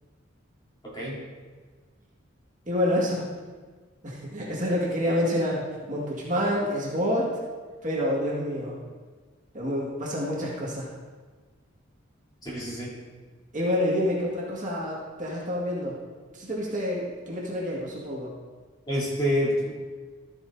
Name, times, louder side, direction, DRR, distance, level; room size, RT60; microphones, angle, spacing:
voice 1, 0.8-1.2 12.4-12.9 18.9-19.7, equal, 20° left, -8 dB, 3.5 m, -27 dB
voice 2, 2.7-3.3 4.0-7.4 7.8-8.7 9.5-10.9 13.5-15.9 16.3-18.3, equal, 40° right, -5 dB, 2.0 m, -28 dB
13.5 x 9.4 x 2.8 m, 1.5 s
head